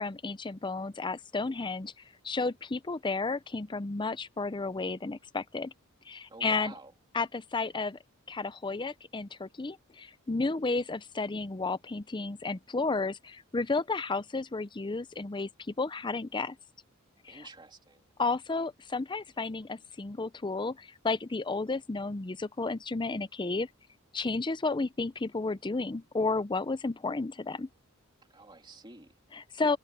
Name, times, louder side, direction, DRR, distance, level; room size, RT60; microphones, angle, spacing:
voice 1, 0.0-1.9 2.2-5.7 6.1-6.7 7.1-8.0 8.3-16.6 17.2-17.5 18.2-23.7 24.1-27.7 29.3-29.8, left 3 dB, 20° left, 0.6 m, -32 dB
voice 2, 6.3-6.9 17.3-18.0 28.3-29.1, right 3 dB, 20° right, 3.1 m, -48 dB
head